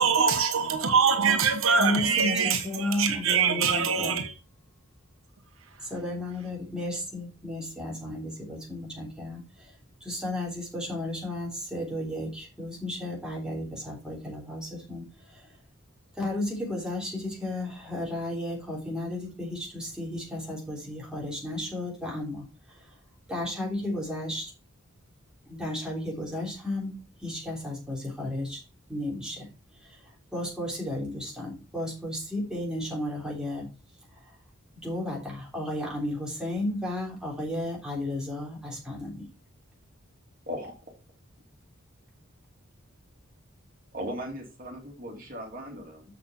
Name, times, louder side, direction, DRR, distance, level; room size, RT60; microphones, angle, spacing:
voice 1, 0.0-4.3, right 6 dB, 80° right, 1.2 m, -24 dB
voice 2, 1.8-4.2 5.8-15.5 16.1-23.0 23.3-24.5 25.5-26.9 27.2-28.6 28.9-33.7 34.2-34.3 34.7-39.3, left 1 dB, 5° right, 3.2 m, -33 dB
voice 3, 40.5-40.8 43.9-46.0, equal, 45° right, 2.5 m, -37 dB
7.4 x 6.6 x 4.3 m
head